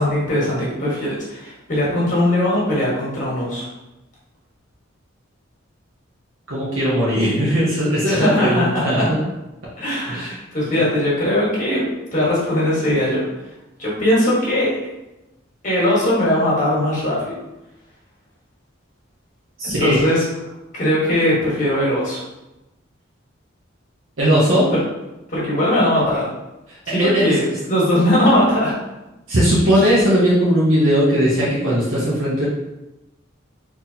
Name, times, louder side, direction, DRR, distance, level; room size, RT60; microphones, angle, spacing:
voice 1, 0.0-3.7 8.0-9.1 9.8-11.8 12.1-13.2 13.8-14.8 15.6-17.3 19.6-20.2 20.7-22.2 24.7-24.8 25.3-26.3 26.9-28.7 29.7-29.9, left 1 dB, 40° left, -6 dB, 1.3 m, -20 dB
voice 2, 6.5-9.2 10.1-10.3 19.6-20.0 24.2-24.7 27.0-27.3 29.3-32.5, equal, 75° right, -7 dB, 0.8 m, -18 dB
3.9 x 2.8 x 2.7 m, 0.99 s
head